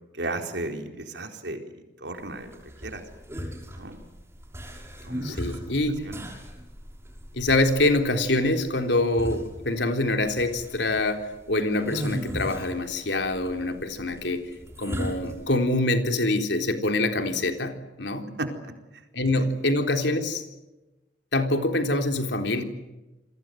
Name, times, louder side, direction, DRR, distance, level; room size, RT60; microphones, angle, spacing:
voice 1, 0.1-1.6 2.0-3.0 3.7-4.0 5.0-5.4 6.0-6.2 18.4-18.5, right 2 dB, 70° right, 4 dB, 4.3 m, -34 dB
sound 1, 2.2-15.7, equal, 15° right, 5.5 m, -37 dB
voice 2, 5.2-6.0 7.3-14.5 14.8-18.3 19.1-20.4 21.3-22.6, left 2 dB, 75° left, 5 dB, 3.7 m, -25 dB
29.0 x 23.0 x 7.9 m, 1.1 s
head